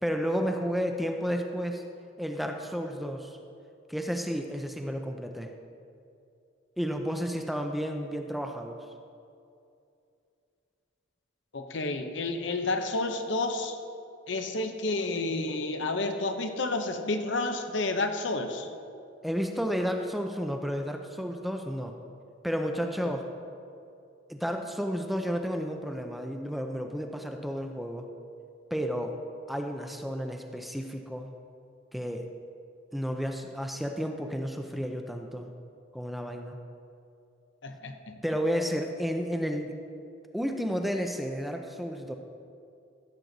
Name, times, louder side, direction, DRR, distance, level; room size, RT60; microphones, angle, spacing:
voice 1, 0.0-1.8 2.2-3.4 3.9-5.5 6.8-8.8 19.2-21.9 22.4-23.3 24.3-28.1 28.7-29.2 29.5-31.3 31.9-32.3 32.9-35.5 35.9-36.6 38.2-39.7 40.3-42.1, equal, ahead, 4 dB, 0.5 m, -32 dB
voice 2, 11.5-13.8 14.3-18.7 37.6-38.2, left 2 dB, 65° left, 6 dB, 0.8 m, -30 dB
15.0 x 7.6 x 4.0 m, 2.5 s
head